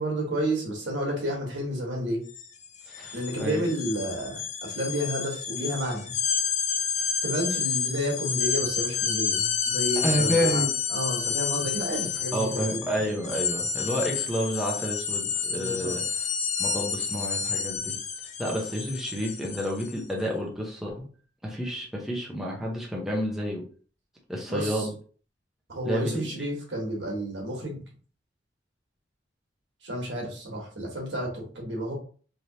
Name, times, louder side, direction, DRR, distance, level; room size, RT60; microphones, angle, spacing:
voice 1, 0.0-2.2 3.1-6.1 7.2-10.6 10.9-12.8 15.5-15.9 24.5-24.9 25.7-27.8 29.8-31.9, equal, 80° right, -1 dB, 1.3 m, -31 dB
sound 1, 2.3-2.4 2.7-20.0, left 6 dB, 40° left, 0.5 m, -30 dB
voice 2, 2.9-3.6 10.0-10.7 12.3-16.0 16.6-18.0 18.4-21.1 21.4-23.6 24.3-24.9 25.8-26.5, equal, ahead, -3 dB, 0.7 m, -30 dB
3.3 x 2.8 x 2.8 m, 0.41 s
head